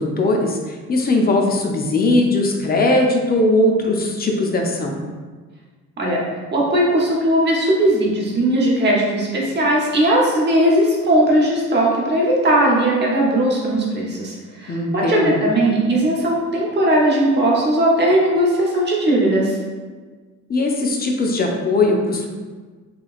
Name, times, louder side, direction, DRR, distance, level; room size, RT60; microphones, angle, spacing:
voice 1, 0.0-4.9 14.7-15.4 20.5-22.2, left 2 dB, 30° left, 1 dB, 0.5 m, -19 dB
voice 2, 6.5-19.6, right 1 dB, 35° right, -3 dB, 0.9 m, -18 dB
2.9 x 2.8 x 2.4 m, 1.4 s
cardioid pair, 90°, 30 cm